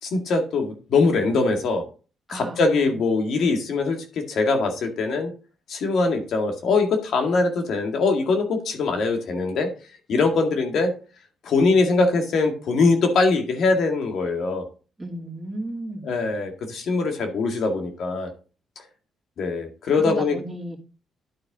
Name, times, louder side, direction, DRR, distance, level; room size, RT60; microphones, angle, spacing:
voice 1, 0.0-1.8 2.3-5.3 5.7-9.7 10.1-10.9 11.4-14.6 16.0-18.3 19.4-20.4, left 3 dB, 65° left, 4 dB, 1.9 m, -22 dB
voice 2, 2.3-2.6 15.0-16.1 20.0-20.8, right 1 dB, 15° right, -3 dB, 2.7 m, -33 dB
11.5 x 4.4 x 3.7 m, 0.36 s
cardioid pair, 90°, 0 cm